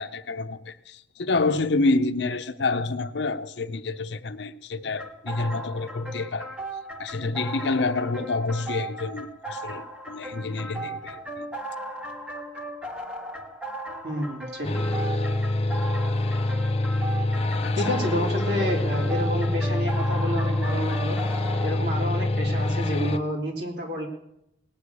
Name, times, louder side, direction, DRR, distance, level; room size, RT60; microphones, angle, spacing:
voice 1, 0.0-6.5 7.0-11.2 17.6-17.8, left 3 dB, 70° left, 0.7 m, -28 dB
sound 1, 5.0-21.7, right 1 dB, 5° right, 1.3 m, -37 dB
voice 2, 14.0-14.9 17.7-21.2 21.6-24.1, equal, 60° right, 3.2 m, -29 dB
sound 2, 14.6-23.2, left 1 dB, 35° left, 0.7 m, -25 dB
18.5 x 6.5 x 8.4 m
head